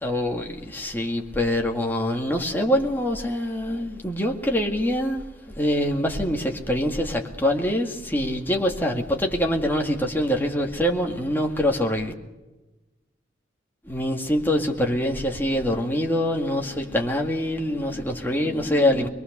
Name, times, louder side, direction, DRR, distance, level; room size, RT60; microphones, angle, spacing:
voice 1, 0.0-5.2 5.6-12.1 13.8-19.1, left 1 dB, 10° left, 1 dB, 2.1 m, -24 dB
23.0 x 22.0 x 6.8 m, 1.1 s
head